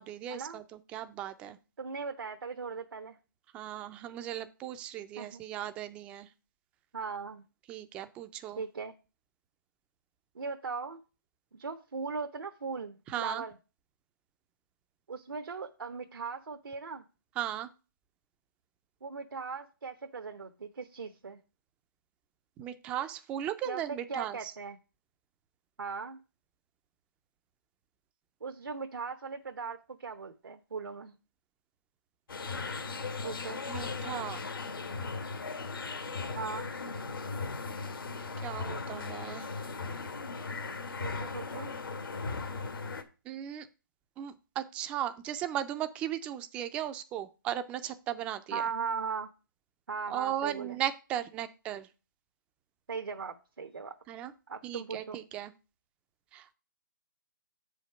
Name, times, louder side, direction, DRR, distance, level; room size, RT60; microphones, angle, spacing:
voice 1, 0.0-1.6 3.5-6.3 7.7-8.6 13.1-13.4 17.4-17.7 22.6-24.5 33.7-34.5 38.4-39.5 43.3-43.7 44.2-48.7 50.1-51.9 54.1-54.3 54.6-55.5 56.3-56.5, right 11 dB, 10° right, 0.4 m, -37 dB
voice 2, 1.8-3.2 5.2-5.4 6.9-7.4 8.6-8.9 10.3-11.0 11.5-13.6 15.1-17.0 19.0-21.4 23.7-24.8 25.8-26.2 28.4-31.2 33.2-33.6 36.3-36.7 40.9-41.8 48.5-49.3 49.9-50.8 52.9-54.0 54.5-55.2, right 5 dB, 85° right, 1.0 m, -38 dB
sound 1, 32.3-43.0, left 4 dB, 80° left, 1.5 m, -37 dB
7.4 x 5.1 x 5.5 m
hypercardioid pair, 160°, 11 cm